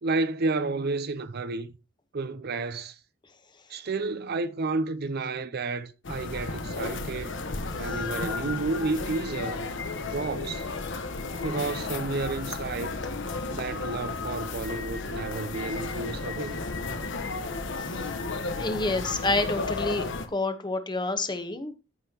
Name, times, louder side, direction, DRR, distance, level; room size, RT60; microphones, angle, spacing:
voice 1, 0.0-1.7 2.1-3.0 3.7-7.4 7.7-9.7 10.0-10.6 11.4-13.0 13.5-16.6, right 3 dB, 55° right, 0.6 m, -31 dB
sound 1, 6.0-20.3, left 3 dB, 65° left, 1.1 m, -33 dB
voice 2, 17.8-18.1 18.6-21.7, left 2 dB, 25° left, 1.1 m, -29 dB
14.0 x 5.6 x 2.9 m
head